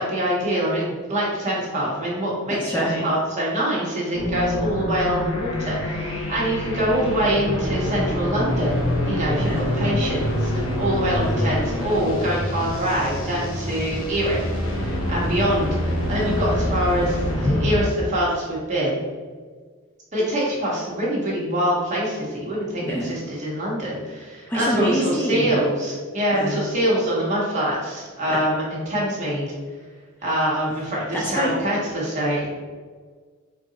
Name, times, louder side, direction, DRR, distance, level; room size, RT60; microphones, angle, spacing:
voice 1, 0.0-19.0 20.1-29.5 30.2-32.5, equal, 35° right, -6 dB, 1.4 m, -24 dB
voice 2, 2.5-3.1 9.4-9.6 22.9-23.1 24.5-25.6 26.3-26.6 28.3-28.4 31.1-31.6, equal, 10° left, -3 dB, 0.4 m, -25 dB
sound 1, 4.1-17.9, left 1 dB, 75° left, 1.0 m, -26 dB
4.6 x 2.6 x 4.0 m, 1.5 s
head